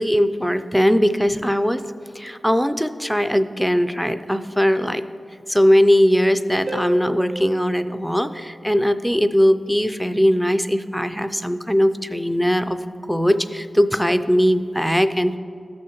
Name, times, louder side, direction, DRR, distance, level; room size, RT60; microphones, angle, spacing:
voice 1, 0.0-1.8 2.2-5.0 5.5-12.8 13.1-15.4, equal, ahead, 10 dB, 0.3 m, -19 dB
Harp, 6.7-9.2 12.7-12.8, right 1 dB, 80° right, 1.6 m, -35 dB
13.5 x 6.3 x 2.9 m, 2.5 s
wide cardioid pair, 100°, 0 cm